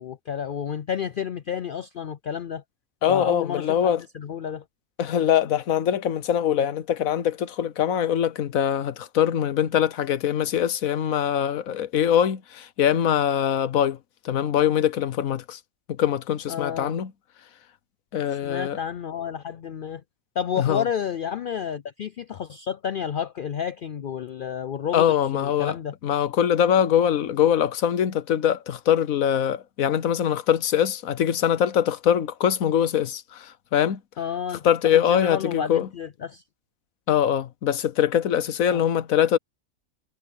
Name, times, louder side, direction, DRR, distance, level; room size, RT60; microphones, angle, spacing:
voice 1, 0.0-2.6 3.1-4.6 16.5-17.0 18.3-20.0 20.4-25.9 34.2-36.4 38.7-38.9, left 8 dB, 65° left, 0.5 m, -31 dB
voice 2, 3.0-4.0 5.0-14.0 14.2-15.6 15.9-17.1 18.1-18.8 20.6-20.8 24.9-25.7 26.0-34.0 34.6-35.9 37.1-39.4, left 9 dB, 85° left, 1.3 m, -23 dB
omnidirectional pair, 1.4 m